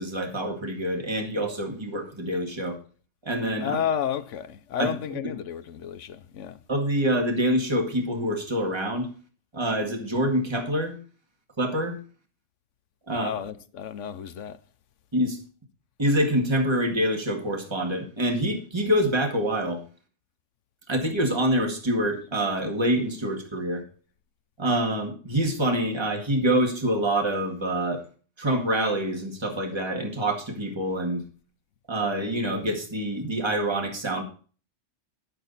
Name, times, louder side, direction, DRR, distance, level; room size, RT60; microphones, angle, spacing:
voice 1, 0.0-2.8 3.2-3.8 4.8-5.3 6.7-9.1 9.5-11.0 11.6-12.0 13.1-13.3 15.1-15.4 16.0-19.8 20.9-23.8 24.6-28.0 28.4-31.2 31.9-34.2, right 1 dB, 20° right, 1.9 m, -26 dB
voice 2, 3.6-6.6 13.1-14.6, left 8 dB, 75° left, 1.1 m, -31 dB
11.0 x 7.9 x 4.1 m
omnidirectional pair, 1.3 m